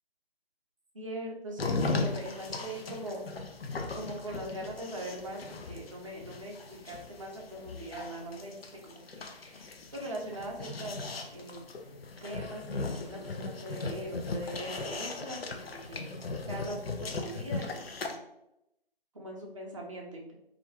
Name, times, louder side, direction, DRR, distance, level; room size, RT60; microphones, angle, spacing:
voice 1, 0.9-3.3 3.9-8.6 8.8-11.6 12.2-16.1 16.5-18.2 19.1-20.3, right 1 dB, 35° right, -1 dB, 0.5 m, -41 dB
sound 1, 1.6-18.2, left 3 dB, 75° left, 0.5 m, -38 dB
2.3 x 2.1 x 2.9 m, 0.83 s
figure-of-eight pair, 150°, 30 cm